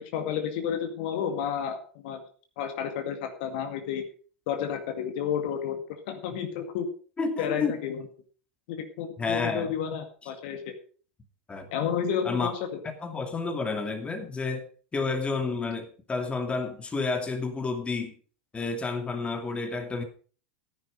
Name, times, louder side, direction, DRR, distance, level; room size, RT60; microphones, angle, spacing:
voice 1, 0.0-2.2 2.6-4.0 4.5-5.8 6.1-6.9 7.4-8.0 8.7-10.7 11.7-12.7, left 8 dB, 55° left, 7 dB, 2.1 m, -31 dB
voice 2, 7.2-7.8 9.2-9.7 11.5-11.7 12.2-12.5 12.8-14.6 14.9-18.1 18.5-20.0, left 4 dB, 15° left, 6 dB, 2.5 m, -30 dB
14.5 x 10.0 x 5.1 m, 0.41 s
figure-of-eight pair, 90°, 7 cm